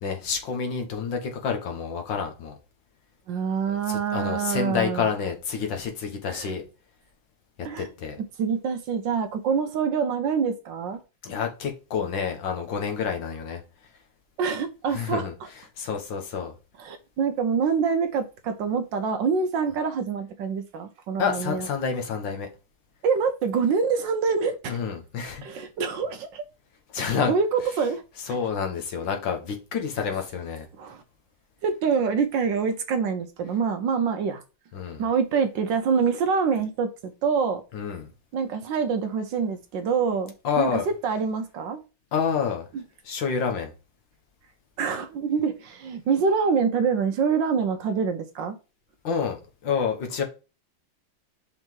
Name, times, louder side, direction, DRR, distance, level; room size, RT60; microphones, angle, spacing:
voice 1, 0.0-2.6 3.7-6.6 7.6-8.2 11.2-13.6 14.9-15.3 15.8-16.5 21.2-22.5 24.7-25.4 26.9-27.4 28.3-30.7 34.7-35.0 37.7-38.1 40.4-40.9 42.1-42.6 43.0-43.7 49.0-50.2, left 6 dB, 65° left, 1.8 m, -28 dB
voice 2, 3.3-5.1 6.3-6.5 7.6-7.9 8.4-11.0 14.4-15.2 16.8-21.7 23.0-24.8 25.4-26.4 27.0-28.0 28.3-28.4 30.8-31.0 31.6-34.4 35.0-37.6 38.3-41.8 44.8-48.6, right 6 dB, 70° right, 1.3 m, -26 dB
5.4 x 3.9 x 4.5 m
omnidirectional pair, 2.3 m